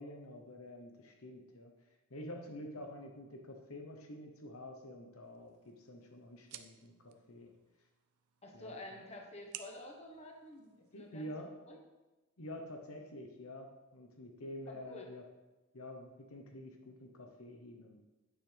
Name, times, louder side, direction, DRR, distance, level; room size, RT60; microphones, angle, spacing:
voice 1, 0.0-1.7 2.1-7.5 8.5-8.7 10.9-11.6 12.4-15.2 15.7-18.0, left 1 dB, 70° left, 3 dB, 1.0 m, -48 dB
sound 1, 5.2-11.2, right 11 dB, 90° right, 0.6 m, -56 dB
voice 2, 8.4-11.8 14.7-15.1, left 2 dB, 30° left, 1 dB, 1.3 m, -50 dB
9.5 x 8.7 x 3.5 m, 1.1 s
head